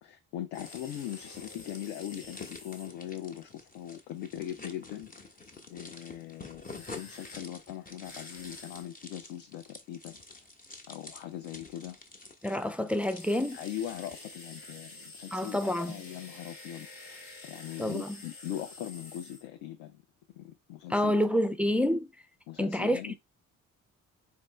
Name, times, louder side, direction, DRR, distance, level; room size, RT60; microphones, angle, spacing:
voice 1, 0.0-5.1 5.7-10.2 10.9-12.0 13.5-20.0 20.3-21.1 22.5-23.2, left 11 dB, 65° left, 0.6 m, -40 dB
sound 1, 0.5-2.9 6.6-7.4 8.0-8.9 13.2-19.5, left 2 dB, 85° left, 1.0 m, -49 dB
sound 2, 0.6-14.3, left 3 dB, 20° left, 1.0 m, -49 dB
voice 2, 12.4-13.6 15.3-15.9 17.8-18.2 20.9-22.1 22.6-23.2, left 1 dB, 5° right, 0.4 m, -28 dB
4.2 x 3.0 x 3.1 m
figure-of-eight pair, 40°, 43 cm